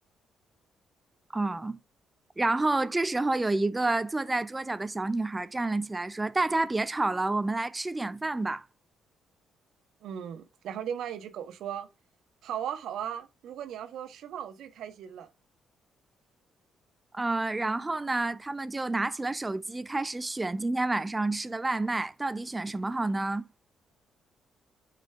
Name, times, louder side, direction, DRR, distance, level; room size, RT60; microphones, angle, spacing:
voice 1, 1.3-1.8 2.4-8.6 17.1-23.4, right 2 dB, 20° right, 0.8 m, -29 dB
voice 2, 10.0-11.9 12.4-15.3, right 9 dB, 70° right, 1.3 m, -37 dB
8.9 x 5.2 x 3.5 m
hypercardioid pair, 45°, 0 cm